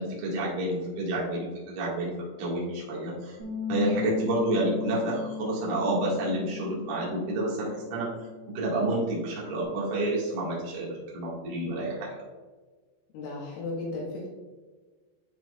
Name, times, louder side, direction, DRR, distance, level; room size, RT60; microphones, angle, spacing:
voice 1, 0.0-2.1 2.4-3.4 3.7-8.1 8.5-12.2, right 2 dB, 75° right, -5 dB, 4.5 m, -29 dB
Bass guitar, 3.4-9.6, left 7 dB, 60° right, 1.4 m, -37 dB
voice 2, 13.1-14.3, left 2 dB, 90° left, -5 dB, 4.2 m, -35 dB
13.0 x 4.4 x 2.5 m, 1.3 s
omnidirectional pair, 5.5 m